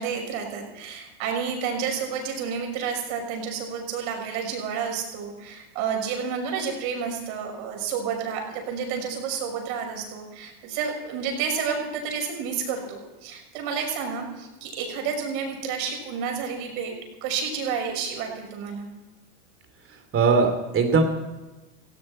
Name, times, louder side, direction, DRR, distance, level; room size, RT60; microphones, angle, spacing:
voice 1, 0.0-16.9 17.2-18.9, right 6 dB, 60° right, 2 dB, 6.4 m, -30 dB
voice 2, 19.9-21.0, right 4 dB, 25° right, 6 dB, 3.0 m, -21 dB
18.5 x 16.0 x 4.4 m, 1.1 s
supercardioid pair, 135°, 47 cm